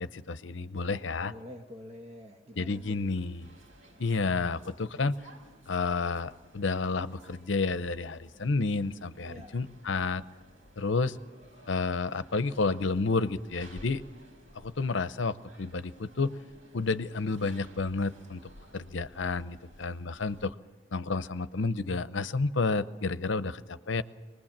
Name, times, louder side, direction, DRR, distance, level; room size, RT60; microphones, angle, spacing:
voice 1, 0.0-1.3 2.6-3.5 4.0-5.2 5.7-10.2 10.8-11.2 11.7-14.0 14.6-16.3 16.7-18.4 18.7-20.5 20.9-24.0, left 3 dB, 65° left, 14 dB, 0.7 m, -30 dB
voice 2, 1.2-2.9 9.2-9.6, equal, 30° right, 3 dB, 1.2 m, -46 dB
sound 1, 2.7-20.4, equal, 80° right, 6.4 m, -55 dB
24.5 x 20.0 x 7.4 m, 1.3 s
head